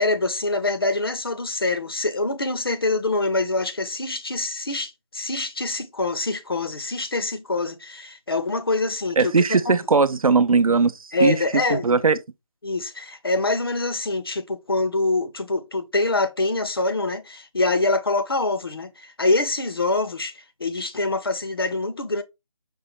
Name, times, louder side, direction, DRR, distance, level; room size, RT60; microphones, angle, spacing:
voice 1, 0.0-9.3 9.7-9.8 11.1-11.9 12.6-22.2, left 2 dB, 40° left, 0.5 m, -25 dB
voice 2, 9.2-12.2, right 4 dB, 80° right, 0.6 m, -19 dB
5.3 x 2.1 x 3.9 m
figure-of-eight pair, 170°, 18 cm